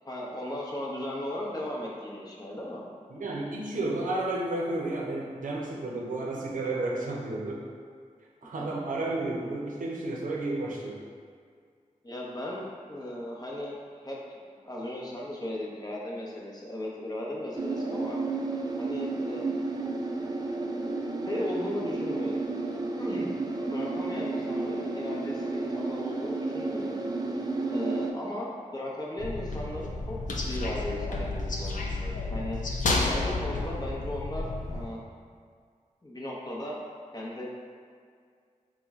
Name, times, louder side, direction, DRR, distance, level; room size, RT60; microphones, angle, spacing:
voice 1, 0.0-2.8 8.6-8.7 12.0-13.8 14.0-18.2 18.8-19.6 21.3-22.4 23.0-23.4 23.6-27.0 27.7-32.6 32.9-35.0 36.0-36.8 37.1-37.5, left 1 dB, 30° left, -4 dB, 0.8 m, -36 dB
voice 2, 3.1-7.6 8.4-11.0, right 2 dB, 80° right, -3 dB, 0.6 m, -32 dB
sound 1, 17.6-28.1, right 3 dB, 30° right, 0.4 m, -32 dB
sound 2, 29.2-34.9, left 2 dB, 70° left, 0.4 m, -31 dB
4.4 x 2.1 x 3.5 m, 2.1 s
cardioid pair, 50°, 14 cm